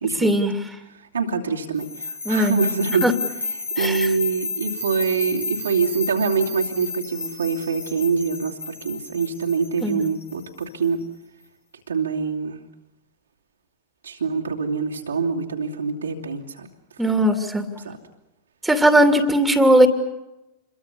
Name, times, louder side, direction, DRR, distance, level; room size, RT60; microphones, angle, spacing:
voice 1, 0.2-0.6 2.2-2.6 3.0-3.1 3.8-4.1 9.8-10.1 17.0-17.7 18.6-19.9, right 1 dB, 5° right, 8 dB, 2.6 m, -18 dB
voice 2, 1.1-3.1 3.8-11.0 11.9-12.6 14.0-16.7 17.8-18.0, right 5 dB, 70° right, 0 dB, 2.7 m, -25 dB
sound 1, 1.8-10.8, left 3 dB, 75° left, 5.2 m, -32 dB
28.0 x 22.5 x 7.0 m, 0.96 s
figure-of-eight pair, 90°, 0 cm